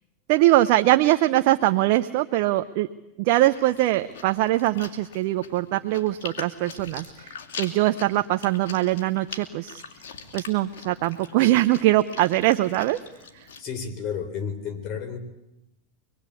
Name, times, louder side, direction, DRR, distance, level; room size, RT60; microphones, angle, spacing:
voice 1, 0.3-2.9 3.2-9.8 10.3-13.0 13.3-13.4, right 16 dB, 60° right, 8 dB, 0.8 m, -22 dB
Chewing mastication, 3.5-13.6, left 6 dB, 75° left, 3.0 m, -42 dB
voice 2, 13.6-15.2, left 7 dB, 45° left, 8 dB, 4.3 m, -31 dB
25.0 x 21.5 x 8.5 m, 0.90 s
hypercardioid pair, 110°, 0 cm